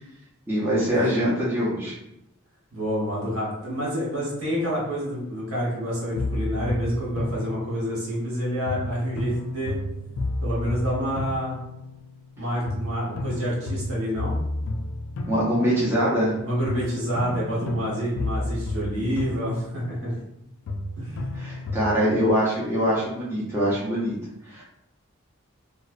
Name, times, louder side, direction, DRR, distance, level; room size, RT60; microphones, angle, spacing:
voice 1, 0.5-2.0 15.2-16.4 21.3-24.1 24.5-24.6, equal, 10° right, -7 dB, 0.5 m, -23 dB
voice 2, 2.7-9.8 10.4-11.6 12.4-14.4 16.4-20.1 21.0-21.2, equal, 85° right, -5 dB, 1.1 m, -28 dB
sound 1, 6.2-8.3 8.7-12.4 12.7-16.3 16.7-20.4 20.7-22.3, left 1 dB, 65° left, 0.3 m, -32 dB
2.6 x 2.1 x 2.4 m, 0.81 s
head